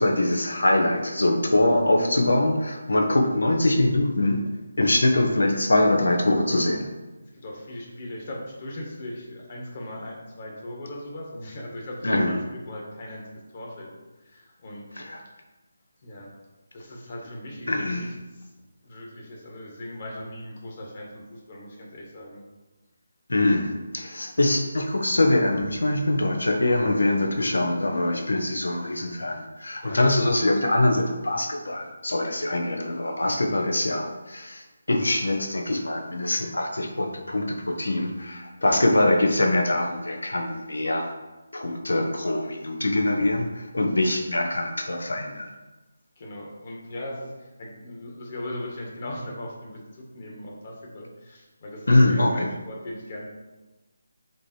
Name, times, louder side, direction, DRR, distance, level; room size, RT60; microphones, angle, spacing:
voice 1, 0.0-4.4 4.8-6.9 12.0-12.4 15.0-15.2 17.7-18.0 23.3-41.1 41.5-45.5 51.9-52.5, left 1 dB, 80° left, 3 dB, 1.3 m, -23 dB
voice 2, 7.2-13.2 13.5-13.9 14.2-14.9 16.0-16.3 16.7-18.5 18.8-22.4 27.0-27.2 28.7-28.9 29.8-30.1 32.3-32.5 38.6-38.8 46.2-53.3, left 1 dB, 40° left, -2 dB, 2.0 m, -39 dB
7.4 x 3.3 x 4.7 m, 1.1 s
figure-of-eight pair, 160°, 0 cm